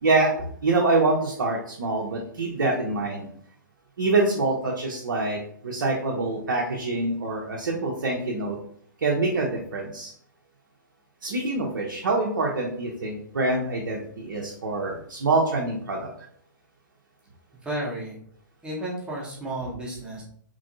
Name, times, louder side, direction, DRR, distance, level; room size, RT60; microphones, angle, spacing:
voice 1, 0.0-3.3 4.0-8.6 9.0-10.1 11.2-16.1, right 2 dB, 60° right, -1 dB, 0.5 m, -25 dB
voice 2, 17.6-18.2 18.6-20.2, right 1 dB, 10° right, -4 dB, 0.7 m, -32 dB
2.9 x 2.5 x 2.5 m, 0.62 s
figure-of-eight pair, 115°, 11 cm